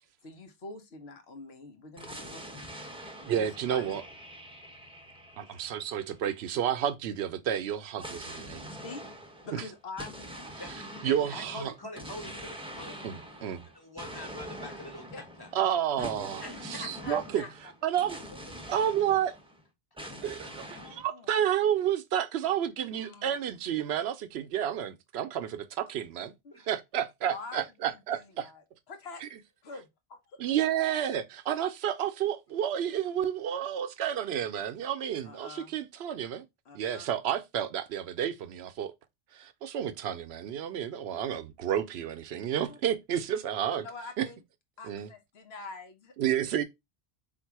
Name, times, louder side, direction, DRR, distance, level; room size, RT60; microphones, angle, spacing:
voice 1, 0.2-2.7 3.2-3.9 5.5-5.6 8.6-9.0 9.4-10.3 11.2-11.3 12.9-13.0 15.1-15.2 16.0-16.5 17.0-17.7 18.3-18.6 20.4-21.3 22.9-23.4 27.3-29.2 29.6-30.4 35.2-35.7 36.6-37.1 42.7-42.8 43.7-44.4 44.8-46.3, left 3 dB, 75° left, 1.1 m, -46 dB
sound 1, 2.0-6.7 8.0-19.6 20.0-21.0, equal, 5° right, 0.6 m, -44 dB
voice 2, 3.2-4.0 5.4-8.7 9.5-9.6 11.0-11.7 13.0-13.7 15.5-17.4 17.8-18.2 18.7-19.4 20.2-20.6 20.9-26.3 26.7-28.5 30.4-36.4 36.7-38.9 39.3-43.9 44.2-44.3 44.9-45.1 46.2-46.6, right 10 dB, 80° right, 0.8 m, -30 dB
voice 3, 11.0-13.0 13.7-15.5 16.4-17.5, left 2 dB, 25° left, 1.1 m, -44 dB
3.6 x 2.5 x 4.6 m
omnidirectional pair, 1.1 m